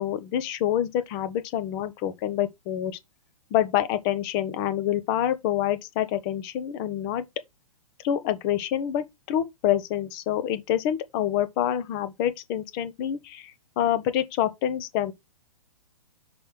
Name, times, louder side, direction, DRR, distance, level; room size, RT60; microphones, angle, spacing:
voice 1, 0.0-3.0 3.5-7.2 8.0-15.1, left 11 dB, 35° left, 1.1 m, -27 dB
6.1 x 3.4 x 5.9 m
figure-of-eight pair, 120°, 18 cm